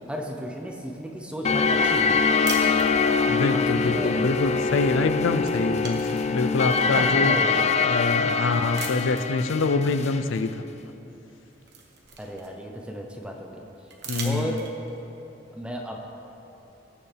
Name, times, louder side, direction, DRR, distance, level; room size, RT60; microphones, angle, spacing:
voice 1, 0.1-2.5 3.5-4.5 6.8-7.8 8.5-8.8 12.2-13.6 14.2-14.7 15.5-16.0, equal, 5° right, 1 dB, 0.7 m, -34 dB
sound 1, 1.4-10.2, left 5 dB, 35° left, 0.4 m, -24 dB
sound 2, 2.4-3.4 4.8-5.1 5.4-7.0 7.6-7.7 8.7-9.4 10.8-10.9 11.3-12.8 13.9-15.0, right 5 dB, 60° right, 1.2 m, -39 dB
voice 2, 3.3-7.4 7.8-10.7 14.1-14.6, left 3 dB, 90° left, 10 dB, 0.5 m, -25 dB
18.0 x 6.9 x 3.4 m, 2.9 s
head